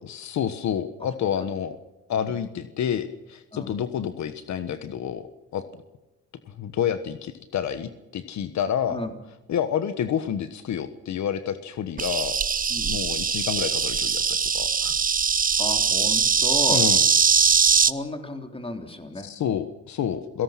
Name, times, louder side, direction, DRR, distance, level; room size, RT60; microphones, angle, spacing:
voice 1, 0.0-1.8 2.1-5.3 5.5-5.6 6.5-9.0 9.5-12.4 12.8-14.2 14.5-14.9 16.4-16.5 16.7-17.0 19.2-20.4, left 9 dB, 65° left, 11 dB, 1.4 m, -29 dB
Insect, 12.0-17.9, right 6 dB, 30° right, 0.8 m, -21 dB
voice 2, 15.6-16.8 17.8-19.3, left 2 dB, 20° left, 5 dB, 3.6 m, -33 dB
29.5 x 17.5 x 6.0 m, 1.0 s
cardioid pair, 90°, 30 cm